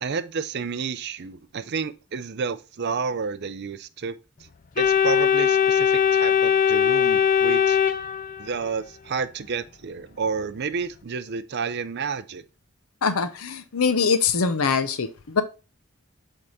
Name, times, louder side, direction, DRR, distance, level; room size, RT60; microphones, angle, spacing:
voice 1, 0.0-4.2 4.8-7.8 8.4-12.4, right 5 dB, 50° right, 0.5 m, -30 dB
Organ, 4.8-8.7, left 8 dB, 40° left, 0.4 m, -20 dB
voice 2, 13.0-15.4, left 5 dB, 80° left, 0.7 m, -23 dB
7.9 x 3.6 x 4.0 m
head